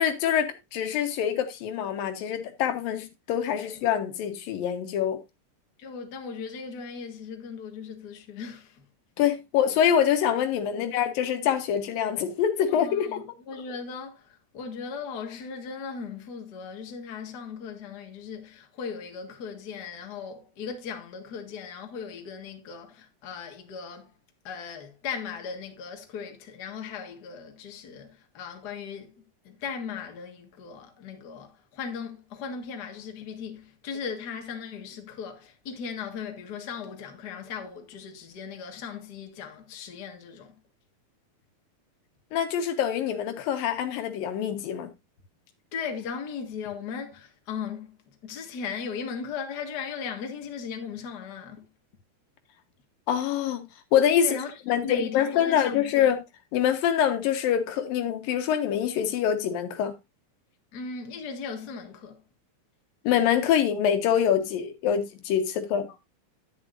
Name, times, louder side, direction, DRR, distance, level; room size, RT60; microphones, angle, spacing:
voice 1, 0.0-5.2 9.2-13.2 42.3-44.9 53.1-54.4 54.7-56.2 56.5-59.9 63.0-65.9, left 9 dB, 80° left, 3.0 m, -25 dB
voice 2, 5.8-8.9 10.7-10.9 12.7-24.1 24.4-40.5 45.7-48.0 48.2-51.7 54.2-56.1 60.7-62.2, left 6 dB, 40° left, 1.6 m, -38 dB
10.5 x 10.0 x 2.6 m
omnidirectional pair, 4.0 m